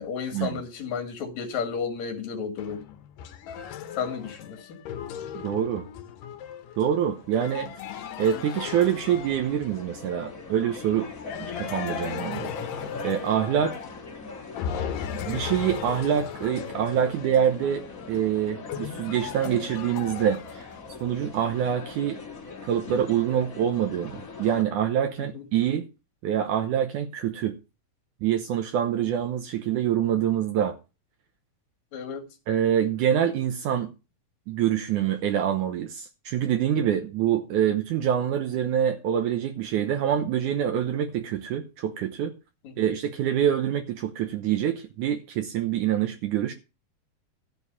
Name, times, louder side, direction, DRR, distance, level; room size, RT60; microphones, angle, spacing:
voice 1, 0.0-2.8 4.0-4.8 25.2-25.5 29.0-29.1 31.9-32.3 42.6-42.9, left 6 dB, 60° left, 3.1 m, -33 dB
sound 1, 2.6-10.0 11.3-14.2 14.6-21.0, left 9 dB, 80° left, 2.7 m, -37 dB
voice 2, 5.3-5.9 6.8-7.7 8.2-11.1 11.6-12.5 13.0-13.8 15.3-20.7 21.0-22.2 22.6-25.9 26.2-27.6 28.2-30.8 32.5-33.9 34.5-42.4 42.8-46.5, right 9 dB, 75° right, 2.3 m, -25 dB
sound 2, 6.7-24.6, left 4 dB, 35° left, 1.5 m, -41 dB
13.5 x 4.7 x 7.0 m
omnidirectional pair, 3.8 m